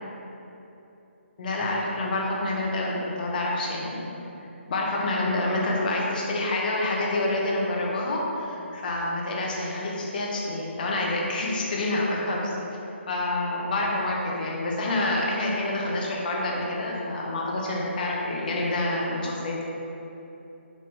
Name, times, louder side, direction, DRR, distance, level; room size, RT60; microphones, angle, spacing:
voice 1, 1.4-4.1 4.7-12.5 13.1-19.6, left 2 dB, 45° left, -3 dB, 0.7 m, -27 dB
5.1 x 2.7 x 3.4 m, 3.0 s
figure-of-eight pair, 155°, 7 cm